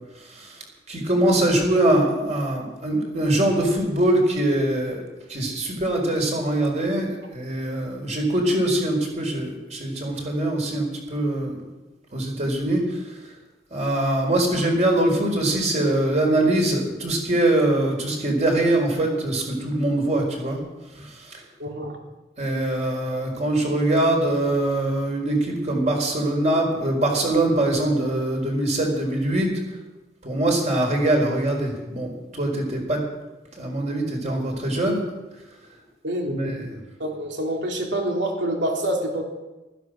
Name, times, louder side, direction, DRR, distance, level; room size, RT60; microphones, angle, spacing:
voice 1, 0.2-0.6 0.9-5.0 5.3-11.6 12.1-13.3 13.7-20.6 20.9-21.4 22.4-29.5 30.2-33.0 33.6-35.0 36.3-36.8, right 1 dB, 40° right, 2 dB, 4.6 m, -23 dB
voice 2, 21.6-22.0 36.0-36.6 37.0-39.2, right 1 dB, 80° right, 1 dB, 3.2 m, -26 dB
15.5 x 13.5 x 6.5 m, 1.1 s
head